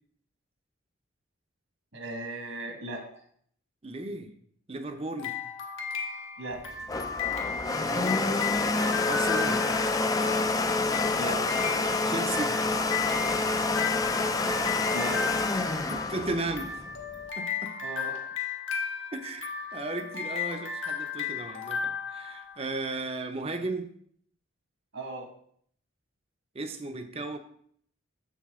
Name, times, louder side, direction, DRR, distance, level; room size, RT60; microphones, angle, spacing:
voice 1, 1.9-3.1 6.4-6.6 11.2-11.4 14.9-15.3 17.8-18.2 24.9-25.3, right 1 dB, 70° right, 2 dB, 1.6 m, -37 dB
voice 2, 3.8-4.3 4.7-5.3 7.9-8.4 9.1-9.6 12.0-12.6 13.5-13.8 15.7-16.9 17.4-17.7 19.1-23.9 26.5-27.4, right 2 dB, 30° right, 8 dB, 0.6 m, -35 dB
sound 1, 5.2-22.9, left 6 dB, 65° left, 1.4 m, -35 dB
Domestic sounds home sounds, 6.5-17.2, left 3 dB, 15° left, 0.4 m, -28 dB
7.4 x 7.1 x 3.7 m, 0.63 s
head